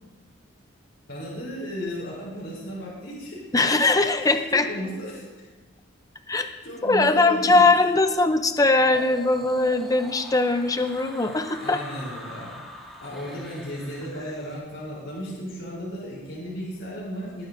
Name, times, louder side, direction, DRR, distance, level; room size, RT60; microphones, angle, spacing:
voice 1, 1.1-3.5 4.2-5.2 6.6-7.8 11.6-12.6 13.0-17.5, equal, 65° left, -7 dB, 3.7 m, -35 dB
voice 2, 3.5-4.7 6.3-6.5 6.8-11.8, left 3 dB, 15° left, 8 dB, 0.5 m, -21 dB
sound 1, 8.9-14.6, equal, ahead, 1.5 m, -43 dB
18.5 x 9.5 x 2.7 m, 1.2 s
head